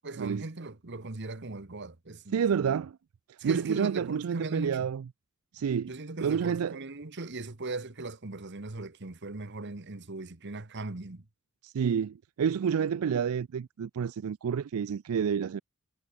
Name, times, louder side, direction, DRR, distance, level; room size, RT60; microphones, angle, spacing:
voice 1, 0.0-2.6 3.4-4.9 5.9-11.3, right 2 dB, 55° right, 1.4 m, -38 dB
voice 2, 2.3-3.0 3.3-5.0 5.5-5.9 6.2-6.8 11.6-15.6, right 7 dB, 85° right, 0.4 m, -29 dB
head